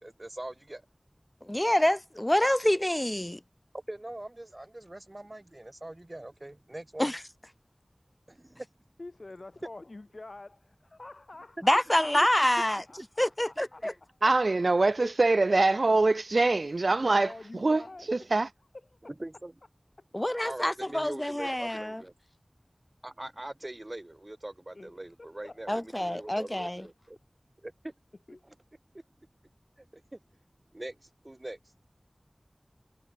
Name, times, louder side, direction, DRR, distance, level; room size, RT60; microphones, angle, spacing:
voice 1, 0.0-0.8 3.7-7.1 8.3-8.7 15.0-15.4 19.2-19.5 20.4-22.1 23.0-27.2 27.6-27.9 28.4-28.5 28.9-29.0 29.8-30.2 30.7-31.6, right 1 dB, 40° right, 2.1 m, -42 dB
voice 2, 1.4-3.4 7.0-7.2 11.6-12.8 13.2-13.9 20.1-22.0 25.7-26.9, left 1 dB, 20° left, 0.4 m, -26 dB
voice 3, 9.0-14.2 16.9-18.1 24.7-24.9 25.2-26.3 28.3-28.4, left 2 dB, 75° left, 0.8 m, -48 dB
voice 4, 14.2-18.5, right 3 dB, 85° right, 0.4 m, -24 dB
wide cardioid pair, 40°, 0 cm